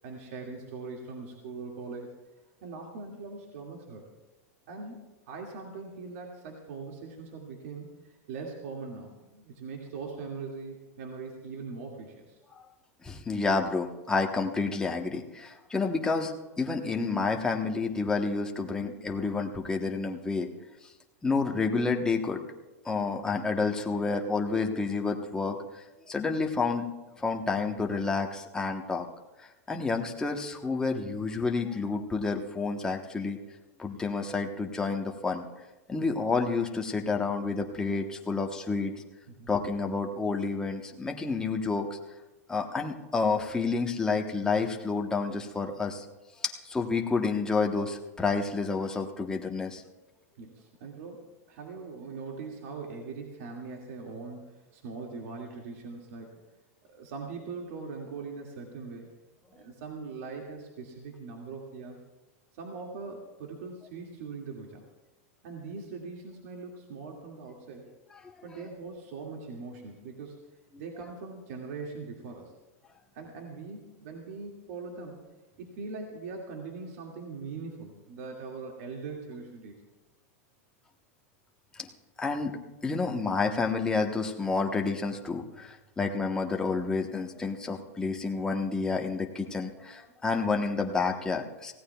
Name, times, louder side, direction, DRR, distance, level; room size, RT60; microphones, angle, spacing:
voice 1, 0.0-2.2 2.6-4.1 4.7-12.4 18.5-18.7 39.3-39.5 50.4-56.4 56.8-59.1 59.5-62.1 62.6-64.8 65.4-67.9 68.4-70.4 70.8-72.5 73.1-75.2 75.6-79.8, right 4 dB, 65° right, 0 dB, 2.2 m, -41 dB
voice 2, 13.0-16.3 16.6-20.5 21.2-22.4 22.8-26.9 27.2-29.1 29.4-33.4 33.8-35.4 35.9-38.9 39.5-42.0 42.5-46.0 46.4-49.8 68.2-68.3 82.2-91.7, left 4 dB, 10° left, 2 dB, 1.1 m, -29 dB
25.5 x 16.5 x 2.3 m, 1.1 s
supercardioid pair, 150°, 8 cm